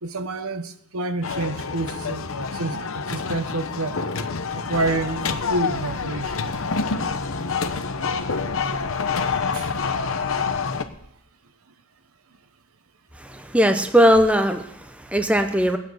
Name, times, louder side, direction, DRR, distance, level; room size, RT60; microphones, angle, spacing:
voice 1, 0.0-4.0 4.5-6.5 9.5-9.7, right 2 dB, 75° right, 9 dB, 1.1 m, -28 dB
sound 1, 1.2-10.8, left 5 dB, 70° left, 0.9 m, -27 dB
sound 2, 4.7-11.1, equal, 25° left, 1.2 m, -45 dB
voice 2, 13.2-15.8, equal, 5° right, 6 dB, 0.8 m, -19 dB
18.0 x 8.9 x 6.4 m, 0.73 s
head